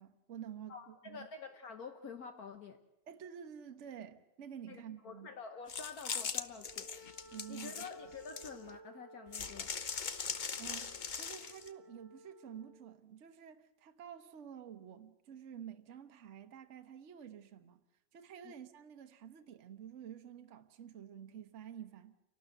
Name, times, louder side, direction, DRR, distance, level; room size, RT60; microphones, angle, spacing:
voice 1, 0.0-1.3 3.1-5.3 7.3-7.8 10.2-17.8 18.1-22.1, right 9 dB, 50° right, 1.2 m, -50 dB
voice 2, 0.7-2.8 4.7-6.9 7.5-9.8 18.4-18.5, left 5 dB, 60° left, 1.5 m, -48 dB
sound 1, 5.7-8.7 9.3-11.7, left 6 dB, 45° left, 0.6 m, -40 dB
Wind instrument woodwind instrument, 6.5-12.8, right 2 dB, 90° left, 6.7 m, -57 dB
29.0 x 12.0 x 7.8 m
omnidirectional pair, 1.8 m